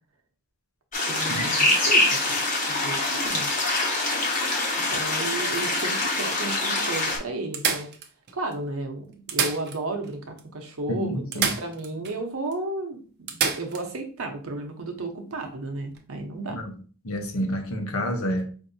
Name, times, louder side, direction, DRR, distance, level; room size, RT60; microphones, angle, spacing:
sound 1, 0.9-7.2, left 2 dB, 35° left, 1.1 m, -24 dB
voice 1, 1.1-2.4 2.7-3.5 4.9-7.9 8.3-16.6, right 2 dB, 75° right, 0.9 m, -33 dB
sound 2, 4.0-5.6 6.3-6.4 6.7-6.8 7.5-8.5 9.1-10.1 10.4-10.5 11.3-12.2 12.5-12.6 13.3-13.9 15.8-16.0, right 6 dB, 50° right, 0.6 m, -30 dB
voice 2, 10.9-11.6 16.5-16.7 17.0-18.5, equal, 75° left, 0.9 m, -29 dB
5.1 x 2.7 x 2.6 m
head